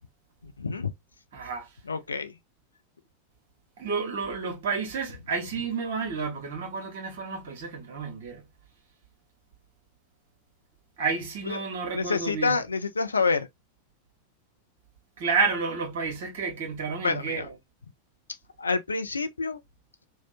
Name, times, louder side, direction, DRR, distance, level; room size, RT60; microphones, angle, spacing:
voice 1, 0.4-0.9 1.9-2.3 11.5-11.6 11.9-13.5 17.0-17.5 18.6-19.6, left 4 dB, 75° left, 0.3 m, -28 dB
voice 2, 1.3-1.7 3.8-8.5 11.0-12.5 15.2-17.5, right 5 dB, 55° right, 0.9 m, -30 dB
2.7 x 2.0 x 2.4 m
figure-of-eight pair, 90°, 0 cm